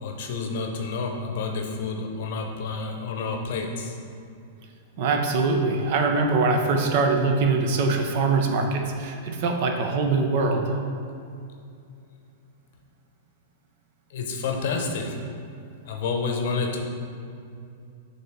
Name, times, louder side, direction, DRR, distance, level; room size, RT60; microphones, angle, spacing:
voice 1, 0.0-3.9 14.1-15.2 15.8-16.8, left 4 dB, 60° left, 3 dB, 0.8 m, -29 dB
voice 2, 5.0-10.7, right 3 dB, 55° right, 4 dB, 0.7 m, -23 dB
7.4 x 2.9 x 4.5 m, 2.5 s
figure-of-eight pair, 100°, 0 cm